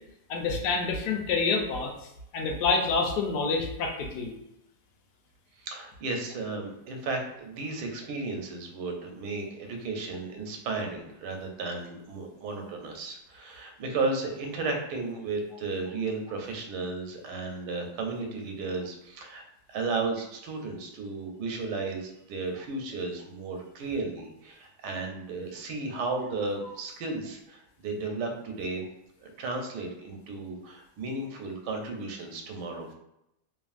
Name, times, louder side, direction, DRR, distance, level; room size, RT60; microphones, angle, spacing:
voice 1, 0.3-1.9 2.3-4.3, left 4 dB, 85° left, 2 dB, 1.2 m, -27 dB
voice 2, 5.6-19.4 19.7-28.9 29.2-32.9, right 3 dB, 90° right, 3 dB, 1.2 m, -34 dB
2.8 x 2.4 x 2.4 m, 0.83 s
omnidirectional pair, 1.7 m